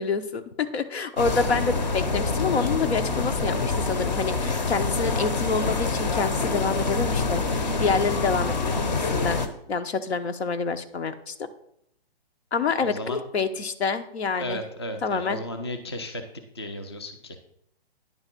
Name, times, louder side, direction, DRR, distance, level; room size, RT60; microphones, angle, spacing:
voice 1, 0.0-8.5 8.8-9.4 9.7-11.3 12.5-14.6 15.0-15.4, left 5 dB, 90° left, 8 dB, 0.9 m, -27 dB
sound 1, 1.2-9.5, left 3 dB, 45° left, 0.8 m, -26 dB
voice 2, 12.8-13.2 14.4-16.2 16.5-17.4, left 1 dB, 25° left, 6 dB, 0.4 m, -34 dB
9.6 x 3.5 x 5.8 m, 0.72 s
hypercardioid pair, 175°, 31 cm